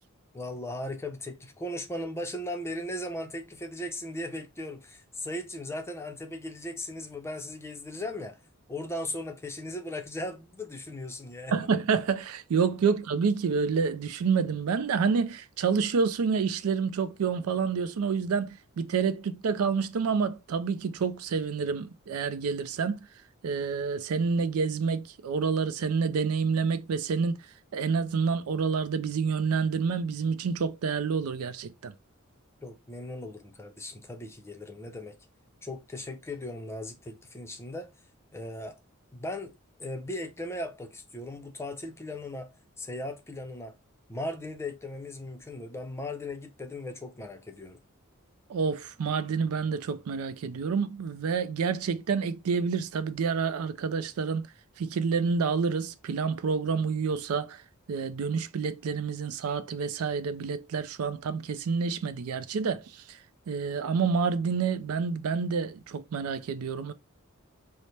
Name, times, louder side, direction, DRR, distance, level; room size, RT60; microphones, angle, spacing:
voice 1, 0.3-8.4 8.7-11.7 32.6-35.2 35.6-37.9 38.3-38.8 39.1-39.5 39.8-42.5 42.8-43.7 44.1-47.8, left 1 dB, 10° left, 0.5 m, -37 dB
voice 2, 11.5-23.0 23.4-27.4 27.7-31.9 48.5-54.5 54.8-57.6 57.9-62.8 63.1-63.2 63.5-66.9, right 5 dB, 80° right, 0.4 m, -28 dB
3.2 x 2.1 x 4.1 m
head